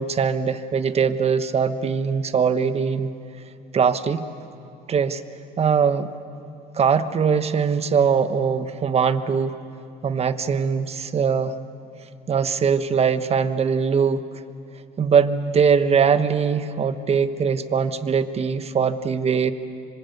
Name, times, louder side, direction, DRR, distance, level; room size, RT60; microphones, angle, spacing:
voice 1, 0.0-3.1 3.7-4.3 4.9-5.2 5.6-6.1 6.7-9.5 10.0-11.5 12.3-14.2 15.0-19.5, right 6 dB, 40° right, 10 dB, 1.2 m, -21 dB
25.5 x 25.5 x 8.4 m, 2.6 s
cardioid pair, 110°, 17 cm